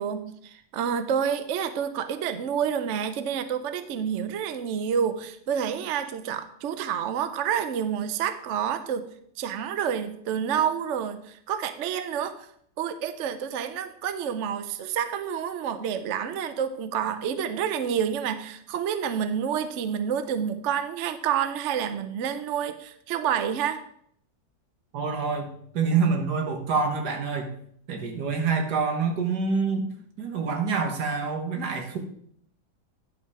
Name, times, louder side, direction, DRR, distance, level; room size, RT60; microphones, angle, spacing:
voice 1, 0.0-9.1 9.4-12.5 12.8-23.8, right 8 dB, 60° right, 10 dB, 0.8 m, -28 dB
voice 2, 24.9-25.5 25.7-27.5 27.9-29.9 30.2-32.0, right 5 dB, 80° right, 4 dB, 1.9 m, -26 dB
10.5 x 5.4 x 4.9 m, 0.65 s
omnidirectional pair, 1.7 m